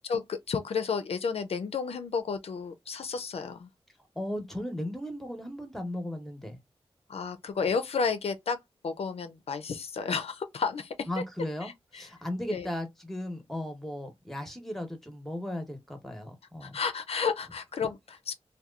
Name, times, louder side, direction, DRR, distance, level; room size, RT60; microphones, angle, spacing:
voice 1, 0.0-3.7 7.1-8.6 8.8-11.1 11.6-12.1 12.5-12.7 16.6-18.3, left 5 dB, 75° left, 0.4 m, -32 dB
voice 2, 4.1-6.6 11.1-16.8, left 1 dB, ahead, 0.8 m, -36 dB
2.8 x 2.2 x 2.2 m
wide cardioid pair, 95°, 10 cm